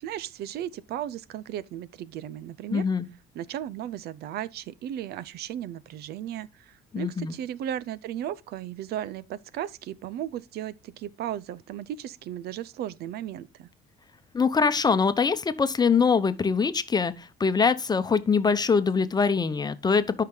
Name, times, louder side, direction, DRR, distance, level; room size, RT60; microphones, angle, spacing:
voice 1, 0.0-2.9 3.3-13.7, right 11 dB, 70° right, 0.6 m, -35 dB
voice 2, 2.7-3.0 6.9-7.3 14.3-20.2, left 5 dB, 25° left, 0.9 m, -23 dB
12.5 x 5.8 x 3.8 m
cardioid pair, 110°, 17 cm